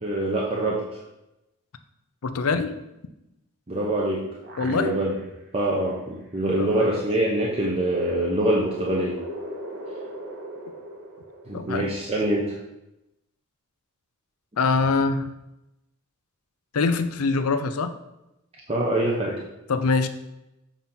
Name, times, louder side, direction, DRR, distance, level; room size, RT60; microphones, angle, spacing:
voice 1, 0.0-0.8 3.7-4.2 4.6-5.1 5.5-9.2 11.5-12.6 18.7-19.4, right 1 dB, 25° right, -4 dB, 0.8 m, -24 dB
voice 2, 2.2-2.8 4.6-5.0 6.6-6.9 7.3-7.4 11.5-11.9 14.6-15.3 16.7-17.9 19.7-20.1, left 4 dB, 70° left, 9 dB, 0.5 m, -24 dB
sound 1, 3.9-5.4 5.9-6.0 7.2-12.0, equal, 50° right, 1.4 m, -39 dB
7.4 x 2.9 x 5.4 m, 0.93 s
head